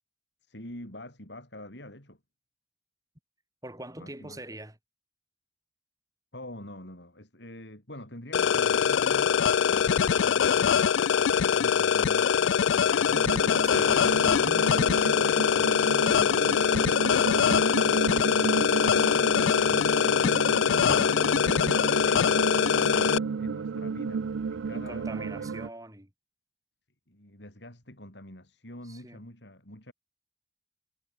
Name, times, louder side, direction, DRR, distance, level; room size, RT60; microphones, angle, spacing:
voice 1, 0.4-2.2 4.0-4.4 6.3-13.7 14.0-19.0 19.6-25.6 27.1-29.9, left 1 dB, 65° left, 6.6 m, -46 dB
voice 2, 3.6-4.8 13.6-14.0 14.5-14.7 22.8-23.2 24.7-26.1 28.8-29.2, right 1 dB, 20° right, 3.5 m, -43 dB
sound 1, 8.3-23.2, left 7 dB, 85° left, 0.4 m, -23 dB
sound 2, 13.1-25.7, right 5 dB, 90° right, 0.4 m, -32 dB
head